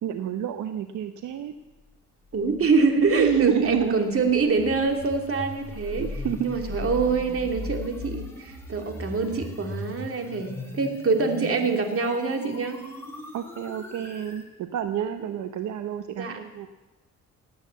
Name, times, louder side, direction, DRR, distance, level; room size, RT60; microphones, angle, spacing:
voice 1, 0.0-1.5 3.1-4.0 5.9-6.5 13.3-16.7, right 9 dB, 75° right, 9 dB, 0.9 m, -28 dB
voice 2, 2.3-6.1 6.4-12.8 16.1-16.4, right 4 dB, 45° right, 4 dB, 2.6 m, -25 dB
sound 1, 2.4-14.5, left 2 dB, 10° left, 3.8 m, -39 dB
18.5 x 9.0 x 8.2 m, 1.1 s
cardioid pair, 90°, 30 cm